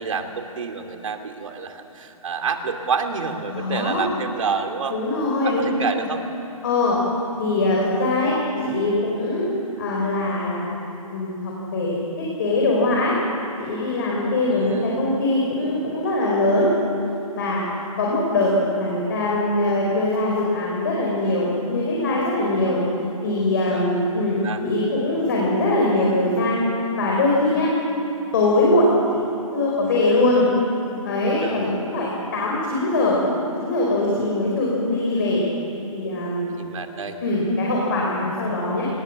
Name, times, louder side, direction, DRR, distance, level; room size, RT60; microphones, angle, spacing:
voice 1, 0.0-5.0 5.4-6.2 14.5-15.0 23.7-23.9 24.4-24.6 31.4-31.7 36.6-37.2, right 5 dB, 60° right, 5 dB, 2.6 m, -28 dB
voice 2, 3.5-4.1 4.9-6.0 6.6-7.0 7.4-8.4 8.6-9.5 9.8-13.1 13.6-16.7 17.3-17.6 18.0-22.8 23.2-26.6 27.0-27.7 28.3-30.5 31.0-33.2 33.6-35.5 35.9-36.5 37.2-38.9, left 2 dB, 35° left, -3 dB, 4.4 m, -22 dB
25.0 x 20.0 x 7.5 m, 3.0 s
hypercardioid pair, 175°, 18 cm